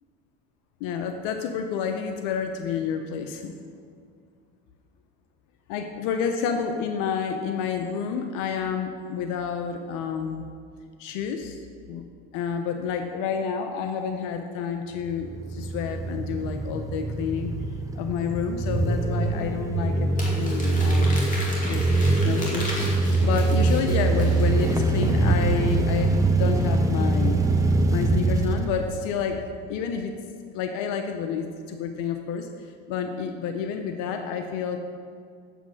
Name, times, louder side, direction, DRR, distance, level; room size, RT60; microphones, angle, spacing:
voice 1, 0.8-3.6 5.7-10.4 11.0-11.6 11.9-12.0 12.3-17.5 18.0-21.2 21.6-21.8 22.2-27.4 27.9-29.4 29.7-30.1 30.5-32.5 32.9-34.8, left 6 dB, 70° left, 6 dB, 0.9 m, -29 dB
sound 1, 15.1-29.4, right 2 dB, 10° right, 0.9 m, -23 dB
Crumpling crinkling, 20.2-24.7, left 1 dB, 25° left, 2.5 m, -36 dB
8.2 x 7.1 x 6.4 m, 2.2 s
supercardioid pair, 110°, 32 cm